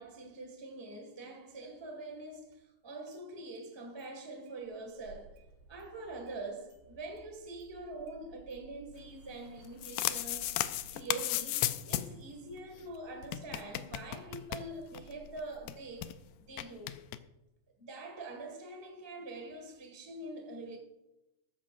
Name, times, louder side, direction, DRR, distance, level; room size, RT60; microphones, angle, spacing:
voice 1, 0.0-5.4 5.7-10.6 10.9-16.2 16.5-17.1 17.8-20.8, right 2 dB, 15° right, 0.9 m, -44 dB
Engine starting, 2.5-2.6 3.0-3.7 4.0-4.1 4.5-16.4, right 3 dB, 65° right, 2.8 m, -59 dB
sound 1, 9.6-12.2 12.5-12.6 12.8-12.9 13.2-15.1 15.4-15.5 15.7-16.1 16.6-17.2, left 14 dB, 80° left, 2.0 m, -35 dB
14.0 x 13.5 x 2.6 m
omnidirectional pair, 4.1 m